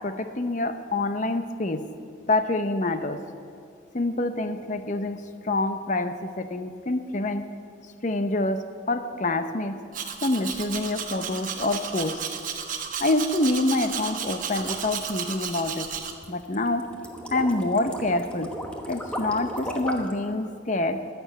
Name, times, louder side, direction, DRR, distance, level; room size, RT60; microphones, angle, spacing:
voice 1, 0.0-1.9 2.3-3.2 3.9-7.5 8.0-9.8 10.2-12.2 13.0-15.9 16.3-16.9 17.3-18.6 18.9-21.1, left 2 dB, 40° left, 9 dB, 0.7 m, -26 dB
Domestic sounds home sounds, 9.9-16.1, right 7 dB, 40° right, 0.9 m, -33 dB
sound 1, 14.3-20.2, equal, 5° left, 1.0 m, -36 dB
14.5 x 6.9 x 9.4 m, 2.3 s
head